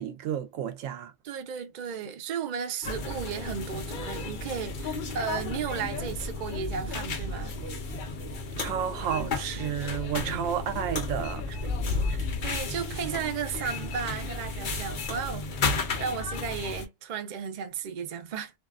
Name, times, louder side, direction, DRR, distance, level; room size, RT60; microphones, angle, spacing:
voice 1, 0.0-1.1 8.6-11.4, right 9 dB, 85° right, 1.0 m, -31 dB
voice 2, 1.2-7.6 11.5-11.7 12.1-18.5, right 7 dB, 55° right, 0.5 m, -34 dB
sound 1, 2.8-16.9, left 3 dB, 50° left, 0.7 m, -34 dB
sound 2, 5.3-14.9, left 3 dB, 30° right, 1.3 m, -37 dB
2.6 x 2.3 x 2.3 m
omnidirectional pair, 1.3 m